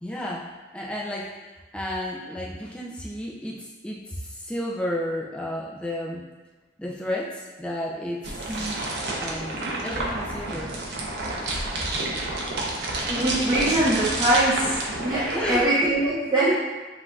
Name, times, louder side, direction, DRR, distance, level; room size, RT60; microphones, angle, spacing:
voice 1, 0.0-6.3 6.8-8.9 9.2-10.8 15.3-15.7, left 1 dB, 5° left, -3 dB, 0.4 m, -32 dB
sound 1, 8.2-15.7, right 2 dB, 65° right, 0.7 m, -29 dB
voice 2, 13.1-16.6, right 1 dB, 25° right, -10 dB, 0.8 m, -23 dB
7.7 x 2.6 x 2.3 m, 1.2 s
head